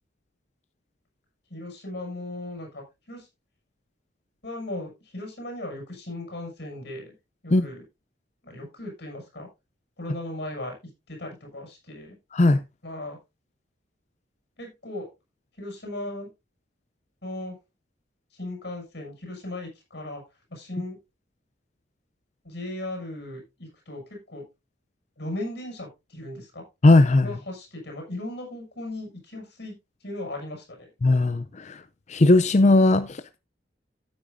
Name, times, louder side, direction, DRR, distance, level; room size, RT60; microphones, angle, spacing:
voice 1, 1.5-3.3 4.4-7.1 7.4-7.8 8.4-9.5 10.0-10.7 11.1-12.1 12.8-13.2 14.6-15.1 15.6-16.3 17.2-17.6 18.3-20.2 20.5-21.0 22.4-24.4 25.2-26.6 27.2-29.8 30.0-30.9, left 1 dB, 60° left, 2 dB, 6.9 m, -37 dB
voice 2, 12.3-12.6 26.8-27.3 31.0-31.8 32.1-33.4, left 2 dB, 40° left, 12 dB, 0.5 m, -18 dB
14.0 x 8.7 x 2.6 m, 0.24 s
head